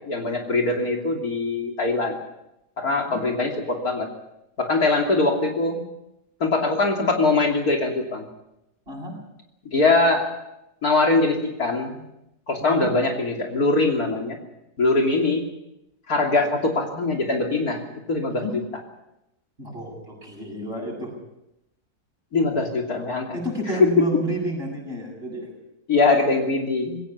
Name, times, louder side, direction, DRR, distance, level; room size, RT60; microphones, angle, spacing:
voice 1, 0.1-2.2 2.8-4.1 4.6-5.8 6.4-8.3 9.7-10.3 10.8-12.0 12.5-14.4 14.8-15.4 16.1-17.8 18.1-18.6 22.3-23.4 23.7-24.1 25.9-27.0, left 3 dB, 65° left, 1 dB, 3.4 m, -22 dB
voice 2, 19.6-21.1 23.3-25.5, equal, 35° right, -1 dB, 8.2 m, -31 dB
21.0 x 18.0 x 7.2 m, 0.88 s
omnidirectional pair, 1.7 m